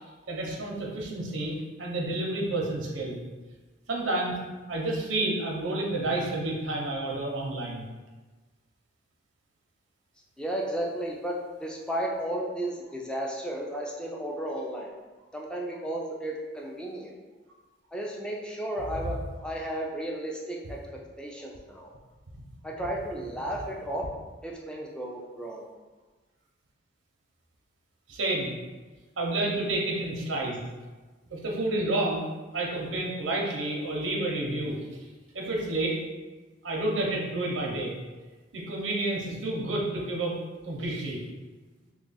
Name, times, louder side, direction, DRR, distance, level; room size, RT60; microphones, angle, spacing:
voice 1, 0.3-3.2 3.9-4.3 4.7-7.8 22.8-22.9 28.1-28.5 29.2-30.6 31.3-32.3 32.5-34.8 35.3-36.0 36.6-37.9 38.5-40.4 40.6-41.2, right 2 dB, 85° right, -2 dB, 0.7 m, -30 dB
voice 2, 10.4-14.9 15.3-17.1 17.9-19.2 19.4-20.8 21.2-21.9 22.6-24.1 24.4-25.6, right 1 dB, 5° left, -2 dB, 0.4 m, -33 dB
3.0 x 2.4 x 3.9 m, 1.3 s
head